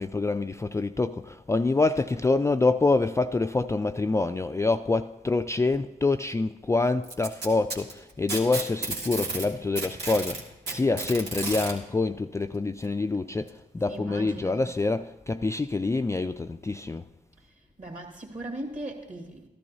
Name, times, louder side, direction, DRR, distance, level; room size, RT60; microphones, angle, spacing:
voice 1, 0.0-17.1, left 3 dB, 15° left, 0.3 m, -26 dB
Packing tape duct tape, 7.0-9.5 9.8-11.7 12.8-12.9 13.5-13.6 14.4-14.5, right 3 dB, 75° right, 1.8 m, -32 dB
voice 2, 13.8-14.7 17.4-19.5, right 1 dB, 45° right, 2.3 m, -39 dB
13.5 x 12.0 x 2.7 m
supercardioid pair, 50°, 18 cm